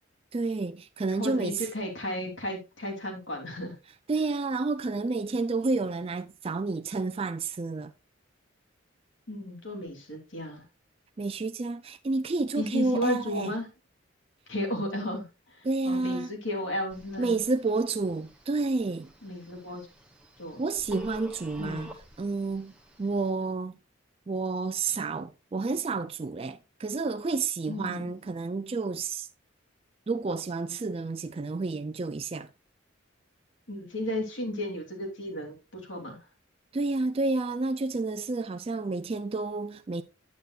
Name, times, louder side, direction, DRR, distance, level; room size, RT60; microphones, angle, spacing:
voice 1, 0.3-1.7 4.1-7.9 11.2-13.5 15.6-16.3 17.2-19.1 20.6-21.9 22.2-22.7 23.0-23.8 24.3-29.3 30.1-32.5 36.7-40.0, right 3 dB, 30° right, 0.3 m, -30 dB
voice 2, 1.1-3.7 9.3-10.6 12.6-13.7 14.5-17.4 19.2-19.9 20.4-20.6 21.6-21.9 27.7-28.1 33.7-36.2, left 1 dB, 70° left, 2.9 m, -34 dB
Telephone, 16.9-23.3, equal, 5° right, 1.2 m, -48 dB
9.4 x 8.9 x 2.4 m
head